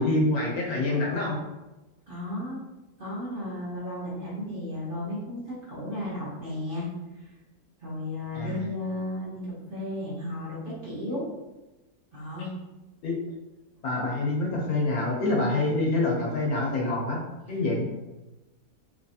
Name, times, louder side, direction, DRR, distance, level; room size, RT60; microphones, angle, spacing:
voice 1, 0.0-1.4 8.3-8.6 13.0-13.1 13.8-17.2 17.5-17.8, left 2 dB, 70° left, -3 dB, 1.3 m, -26 dB
voice 2, 2.1-2.6 3.0-6.9 7.8-11.3 12.1-12.5 17.5-17.6, left 1 dB, 40° right, -8 dB, 1.0 m, -34 dB
3.2 x 2.9 x 2.7 m, 1.0 s
omnidirectional pair, 1.6 m